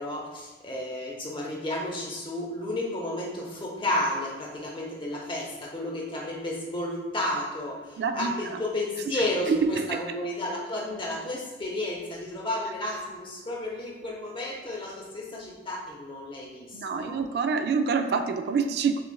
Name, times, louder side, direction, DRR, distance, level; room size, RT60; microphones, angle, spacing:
voice 1, 0.0-17.2, left 1 dB, 30° left, -2 dB, 0.8 m, -32 dB
voice 2, 8.0-8.6 9.5-9.9 16.7-19.0, right 5 dB, 60° right, 7 dB, 0.3 m, -26 dB
5.9 x 2.4 x 2.3 m, 1.3 s
head